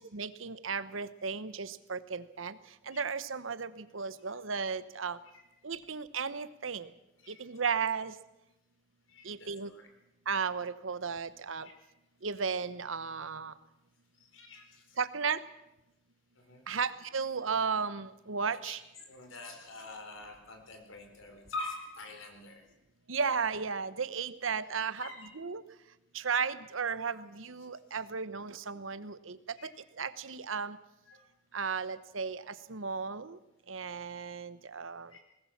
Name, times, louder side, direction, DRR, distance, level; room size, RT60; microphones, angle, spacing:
voice 1, 0.0-2.5 2.9-5.2 5.6-6.9 7.4-8.1 9.3-9.7 10.3-11.7 12.2-13.5 15.0-15.4 16.7-18.8 23.1-25.1 25.4-25.6 26.1-29.4 30.0-30.8 31.5-32.4 32.7-33.4 33.7-35.1, right 5 dB, 90° right, 14 dB, 1.0 m, -34 dB
voice 2, 7.2-7.5 9.1-9.9 11.6-11.8 14.1-15.0 16.3-16.6 18.5-22.7 25.0-25.3 27.9-28.0 29.5-29.7 31.0-31.2 35.1-35.2, left 2 dB, 85° left, 4 dB, 4.5 m, -46 dB
20.0 x 18.5 x 7.3 m, 0.94 s
head